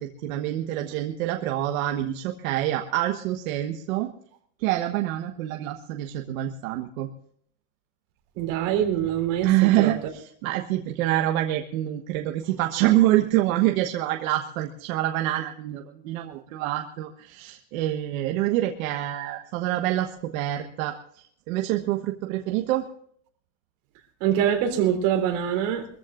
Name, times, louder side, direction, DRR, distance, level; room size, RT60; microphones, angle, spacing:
voice 1, 0.0-4.1 4.6-7.1 9.4-22.9, right 14 dB, 85° right, 4 dB, 1.4 m, -26 dB
voice 2, 8.4-9.9 24.2-25.9, right 9 dB, 60° right, 4 dB, 3.7 m, -24 dB
24.0 x 14.5 x 2.5 m, 0.64 s
supercardioid pair, 165°, 40 cm